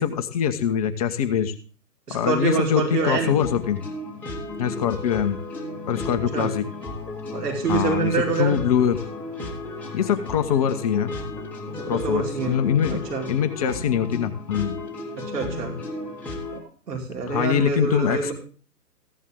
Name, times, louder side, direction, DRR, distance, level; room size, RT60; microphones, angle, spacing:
voice 1, 0.0-1.5 2.1-3.8 4.6-5.4 5.9-6.7 7.7-9.0 9.9-11.1 11.9-13.0 13.3-14.8 17.3-18.3, left 8 dB, 25° left, 7 dB, 0.8 m, -23 dB
voice 2, 2.1-3.3 6.1-6.5 7.3-8.6 11.8-12.6 12.9-13.3 15.3-15.8 16.5-18.3, right 4 dB, 75° right, -1 dB, 5.3 m, -26 dB
sound 1, 3.1-16.6, left 2 dB, 5° left, 2.7 m, -34 dB
15.5 x 11.0 x 3.6 m, 0.38 s
hypercardioid pair, 140°, 48 cm